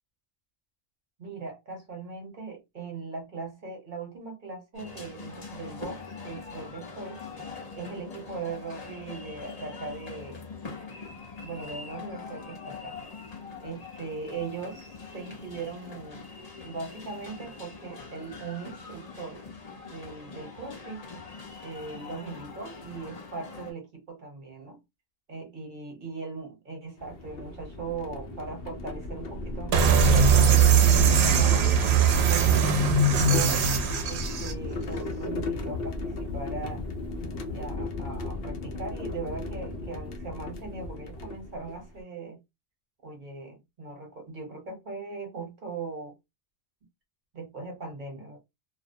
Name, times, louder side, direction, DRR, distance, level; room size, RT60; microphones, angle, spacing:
voice 1, 1.2-7.2 7.7-10.4 11.4-13.0 13.6-16.2 16.6-19.4 19.8-21.0 21.6-24.8 25.3-32.6 33.1-33.7 34.0-36.8 37.5-42.4 43.0-46.1 47.3-48.4, right 4 dB, 50° right, 1.1 m, -39 dB
sound 1, 4.7-23.7, left 4 dB, 40° left, 0.9 m, -43 dB
sound 2, 27.0-42.0, left 1 dB, 70° left, 0.8 m, -34 dB
sound 3, 29.7-34.5, right 6 dB, 80° right, 0.8 m, -20 dB
2.5 x 2.0 x 2.6 m
omnidirectional pair, 1.1 m